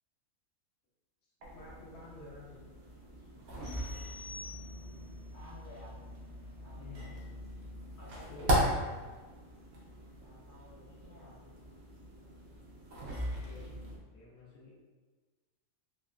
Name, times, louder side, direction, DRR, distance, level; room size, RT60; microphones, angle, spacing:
sound 1, 1.4-14.0, equal, 85° right, 1.1 m, -38 dB
voice 1, 1.5-2.6 6.8-7.1 8.3-8.5 13.4-13.8 14.1-14.7, left 3 dB, 75° left, -6 dB, 1.2 m, -50 dB
sound 2, 3.6-5.2, left 3 dB, 45° left, 1.0 m, -48 dB
voice 2, 5.3-5.9 6.6-7.2 7.9-8.7 10.2-11.4, left 1 dB, 30° right, -10 dB, 0.3 m, -54 dB
3.7 x 2.1 x 2.3 m, 1.4 s
omnidirectional pair, 1.5 m